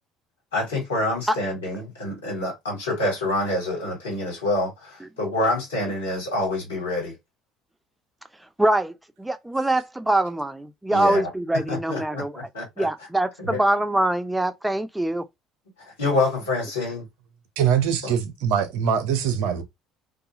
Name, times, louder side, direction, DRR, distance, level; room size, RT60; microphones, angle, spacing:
voice 1, 0.5-7.1 10.9-11.3 11.5-12.9 13.4-13.6 15.8-17.1 18.0-18.1, left 2 dB, 85° left, 1.5 m, -27 dB
voice 2, 8.6-12.3 12.8-15.2, right 1 dB, 10° right, 0.5 m, -23 dB
voice 3, 17.6-19.6, right 8 dB, 70° right, 0.6 m, -23 dB
2.4 x 2.3 x 2.9 m
hypercardioid pair, 60°, 0 cm